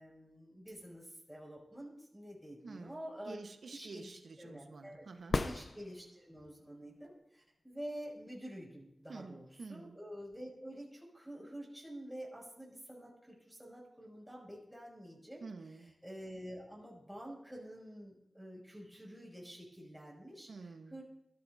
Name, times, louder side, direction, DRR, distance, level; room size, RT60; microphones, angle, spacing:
voice 1, 0.0-3.4 3.7-4.1 4.4-5.1 5.4-15.4 15.8-20.5 20.9-21.0, equal, 5° right, -3 dB, 6.9 m, -48 dB
voice 2, 2.6-5.4 9.1-10.0 15.4-16.0 20.5-21.0, right 4 dB, 80° right, 6 dB, 1.2 m, -49 dB
sound 1, 5.2-6.4 10.3-10.4, left 3 dB, 55° left, 0.8 m, -36 dB
22.0 x 14.0 x 2.8 m, 0.88 s
cardioid pair, 55°, 0 cm